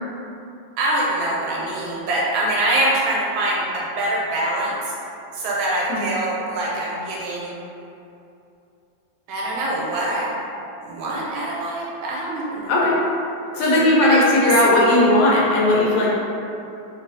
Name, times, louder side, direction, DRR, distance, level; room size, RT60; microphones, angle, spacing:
voice 1, 0.8-4.9 5.3-7.5 9.3-10.3 10.8-12.7 13.5-14.5, right 1 dB, 90° right, -5 dB, 1.5 m, -24 dB
voice 2, 12.7-13.0 13.5-16.1, left 1 dB, 75° left, -4 dB, 1.3 m, -17 dB
3.0 x 2.9 x 2.6 m, 2.7 s
omnidirectional pair, 2.1 m